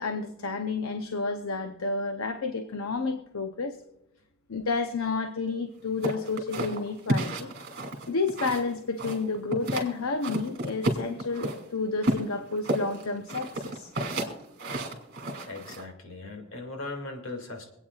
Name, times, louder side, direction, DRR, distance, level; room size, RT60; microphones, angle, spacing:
voice 1, 0.0-3.8 4.5-7.5 8.1-13.9, left 4 dB, 85° left, 7 dB, 0.8 m, -30 dB
sound 1, 6.0-8.7 9.0-9.9 10.2-11.6 12.0-15.8, right 1 dB, 50° right, 2.7 m, -31 dB
voice 2, 15.5-17.7, left 2 dB, 65° left, 3 dB, 2.3 m, -38 dB
26.0 x 9.0 x 2.4 m, 0.87 s
head